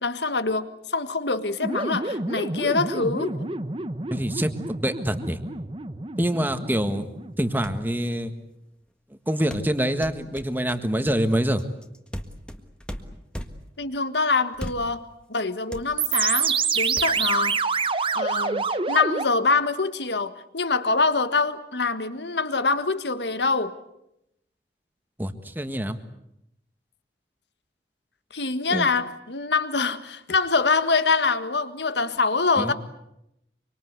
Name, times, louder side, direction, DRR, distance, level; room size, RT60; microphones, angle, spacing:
voice 1, 0.0-3.5 13.8-15.0 15.3-17.6 18.1-23.8 28.3-32.7, left 4 dB, 75° left, 11 dB, 1.6 m, -25 dB
sound 1, 1.6-7.7 16.0-19.2, right 4 dB, 30° right, 1.1 m, -27 dB
voice 2, 4.1-4.5 4.8-5.4 6.2-7.1 7.4-8.3 9.3-11.6 25.2-26.0 28.7-28.9 32.6-32.7, right 1 dB, 10° right, 9 dB, 1.6 m, -25 dB
sound 2, 7.3-7.4 7.6-7.9 9.5-13.8 14.5-15.0 15.3-15.4 15.7-16.3 17.0-17.1, equal, 5° left, 1.6 m, -37 dB
25.5 x 25.0 x 8.2 m, 0.83 s
head